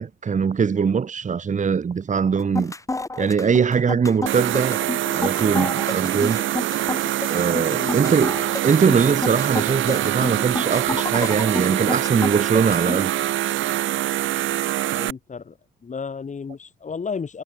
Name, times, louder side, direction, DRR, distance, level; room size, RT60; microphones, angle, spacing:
voice 1, 0.0-2.7 3.2-4.9 5.1-6.4 7.3-8.4 8.6-13.1, right 6 dB, 40° right, 2.1 m, -21 dB
sound 1, 2.4-13.0, left 2 dB, 15° left, 1.8 m, -29 dB
sound 2, 4.3-15.1, right 13 dB, 75° right, 1.3 m, -24 dB
voice 2, 14.9-15.6 15.8-17.4, left 5 dB, 40° left, 6.2 m, -32 dB
cardioid pair, 90°, 20 cm